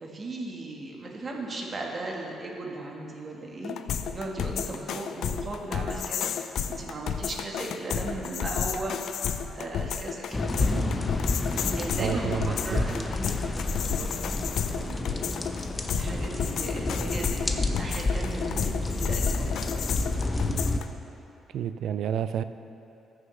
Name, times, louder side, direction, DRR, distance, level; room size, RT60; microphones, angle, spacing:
voice 1, 0.0-3.8 4.1-6.3 6.7-10.8 11.5-15.3 15.9-20.1, right 2 dB, 40° right, -1 dB, 1.4 m, -37 dB
sound 1, 3.6-20.8, left 7 dB, 70° left, 0.4 m, -32 dB
sound 2, 10.3-20.8, left 2 dB, 25° left, 0.7 m, -30 dB
voice 2, 12.0-12.9 21.5-22.4, right 9 dB, 75° right, 12 dB, 0.3 m, -30 dB
14.0 x 6.5 x 3.2 m, 2.8 s
cardioid pair, 90°, 0 cm